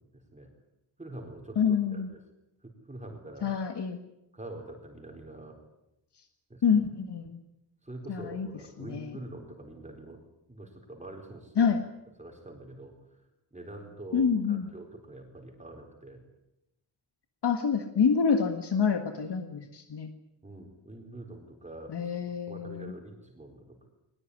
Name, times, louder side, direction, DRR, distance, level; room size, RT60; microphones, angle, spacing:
voice 1, 0.1-0.5 1.0-2.2 2.6-3.5 4.3-5.6 6.5-6.8 7.8-10.2 10.5-11.7 12.2-16.2 20.4-22.0 22.5-23.9, right 1 dB, 15° right, 2 dB, 4.2 m, -45 dB
voice 2, 1.5-2.1 3.4-4.0 6.6-7.4 8.1-8.5 8.8-9.2 11.6-11.8 14.1-14.7 17.4-20.1 21.9-22.9, left 6 dB, 80° left, 6 dB, 1.8 m, -27 dB
22.5 x 20.0 x 9.8 m, 0.88 s
wide cardioid pair, 140°, 40 cm